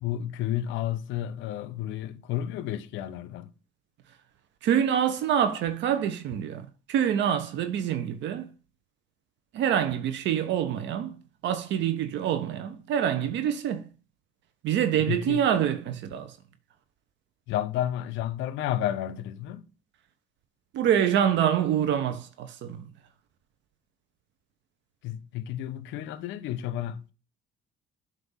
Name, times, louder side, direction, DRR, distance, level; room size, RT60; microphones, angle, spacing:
voice 1, 0.0-3.5 15.0-15.4 17.5-19.7 25.0-27.1, left 12 dB, 70° left, 0.6 m, -31 dB
voice 2, 4.6-8.5 9.5-11.2 11.4-13.8 14.6-16.4 20.7-22.9, right 9 dB, 60° right, 0.6 m, -26 dB
7.7 x 2.6 x 5.5 m
hypercardioid pair, 65°, 21 cm